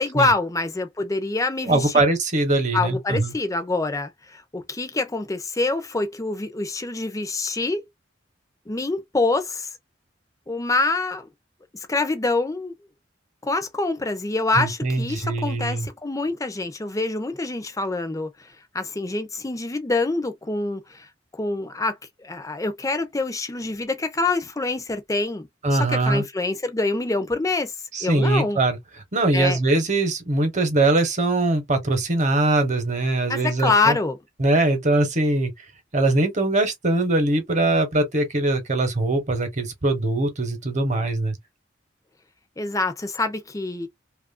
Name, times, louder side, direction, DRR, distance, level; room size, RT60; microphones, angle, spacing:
voice 1, 0.0-1.9 2.7-7.8 8.7-9.7 10.5-11.3 11.9-12.7 13.4-18.3 18.7-21.1 21.4-22.0 22.2-27.7 28.0-28.6 29.3-29.6 33.3-34.2 42.6-43.9, left 3 dB, 20° left, 0.6 m, -25 dB
voice 2, 1.6-3.3 14.6-15.9 25.6-26.2 27.9-28.8 29.1-34.0 34.4-35.5 35.9-41.4, right 2 dB, 40° right, 1.0 m, -22 dB
2.9 x 2.4 x 2.4 m
head